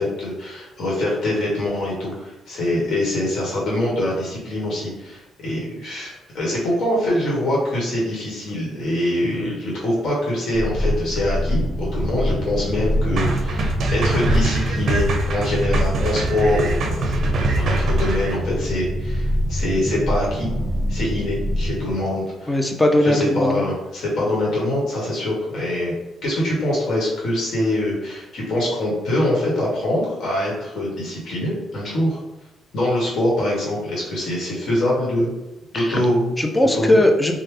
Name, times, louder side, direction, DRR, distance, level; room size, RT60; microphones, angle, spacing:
voice 1, 0.0-17.2 17.6-20.5 20.9-22.6 23.0-25.9 26.2-32.2 32.7-35.3 35.7-36.3 36.7-37.0, left 1 dB, 65° left, -4 dB, 1.1 m, -24 dB
sound 1, 10.5-21.9, equal, 10° right, 1.1 m, -24 dB
sound 2, 13.2-18.4, right 3 dB, 60° right, 0.5 m, -24 dB
voice 2, 22.5-23.7 35.7-36.0 36.4-37.3, left 1 dB, 15° left, 3 dB, 0.5 m, -18 dB
3.2 x 2.1 x 3.2 m, 0.99 s
cardioid pair, 90°, 0 cm